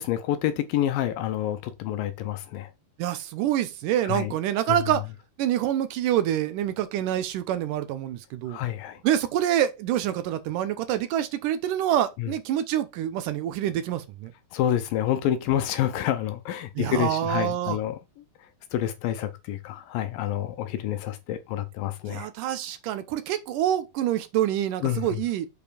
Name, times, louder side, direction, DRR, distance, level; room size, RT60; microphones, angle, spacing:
voice 1, 0.0-2.7 4.0-4.3 4.7-4.8 8.5-9.0 12.2-12.3 14.5-18.0 18.7-22.3 24.8-25.2, left 11 dB, 75° left, 2.3 m, -28 dB
voice 2, 3.0-5.0 5.4-8.6 9.0-14.3 16.8-17.8 22.1-25.5, right 11 dB, 75° right, 2.1 m, -26 dB
6.9 x 5.0 x 5.0 m
omnidirectional pair, 4.4 m